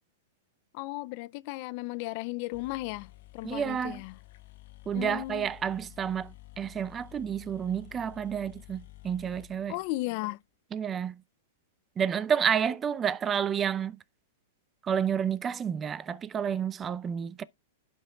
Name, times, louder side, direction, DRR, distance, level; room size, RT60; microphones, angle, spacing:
voice 1, 0.7-4.2 4.9-5.5 9.7-10.4, left 20 dB, 50° left, 0.4 m, -35 dB
sound 1, 2.2-2.3 2.5-10.3, left 17 dB, 65° left, 1.2 m, -51 dB
voice 2, 3.4-4.0 4.9-9.8 10.7-11.2 12.0-14.0 14.8-17.4, right 8 dB, 20° right, 0.5 m, -30 dB
12.5 x 5.5 x 2.3 m
hypercardioid pair, 135°, 0 cm